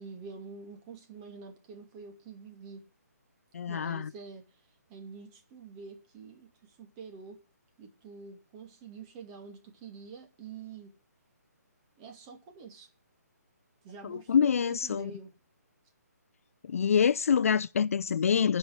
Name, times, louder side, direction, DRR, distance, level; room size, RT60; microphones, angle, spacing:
voice 1, 0.0-2.8 3.7-4.4 4.9-6.5 6.8-7.4 7.8-10.9 12.0-12.9 13.8-15.3, right 5 dB, 20° right, 2.3 m, -47 dB
voice 2, 3.5-4.1 14.0-15.1 16.6-18.6, left 7 dB, 55° left, 0.4 m, -26 dB
9.4 x 5.6 x 8.0 m
hypercardioid pair, 165°, 9 cm